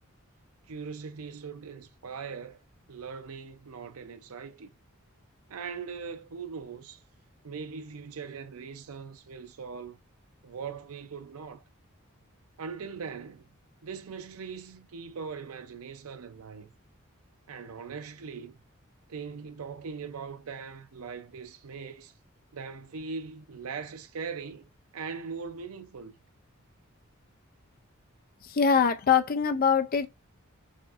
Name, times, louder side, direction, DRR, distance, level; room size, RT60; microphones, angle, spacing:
voice 1, 0.7-2.6 2.9-4.7 5.5-7.0 7.4-10.0 10.4-11.6 12.6-13.5 13.8-16.7 17.5-18.6 19.1-22.1 22.5-26.1, right 5 dB, 90° right, 0.6 m, -40 dB
voice 2, 28.4-30.1, left 6 dB, 45° left, 0.5 m, -23 dB
6.2 x 2.6 x 2.4 m
head